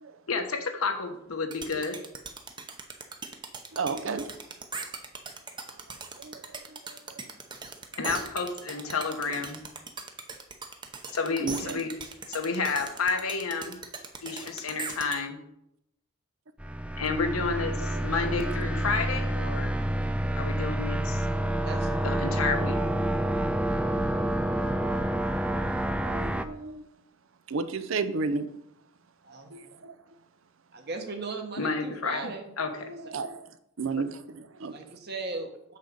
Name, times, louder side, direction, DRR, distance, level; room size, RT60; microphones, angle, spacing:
voice 1, 0.3-2.0 8.0-9.6 11.1-11.9 12.3-13.8 14.2-15.4 17.0-19.7 20.4-21.2 22.0-22.8 31.6-32.7, left 4 dB, 90° left, 1.2 m, -30 dB
sound 1, 1.5-15.2, right 4 dB, 20° right, 0.7 m, -39 dB
voice 2, 3.7-4.2 6.2-6.4 6.7-7.0 9.3-9.4 11.4-11.8 14.3-14.4 26.0-26.8 27.5-28.5 29.5-29.9 32.8-33.5 33.8-34.7, right 4 dB, 65° right, 0.6 m, -33 dB
sound 2, 16.6-26.4, right 1 dB, 5° right, 0.3 m, -28 dB
voice 3, 29.2-29.5 30.7-32.5 34.6-35.8, right 3 dB, 50° right, 1.3 m, -37 dB
6.6 x 5.0 x 6.8 m
head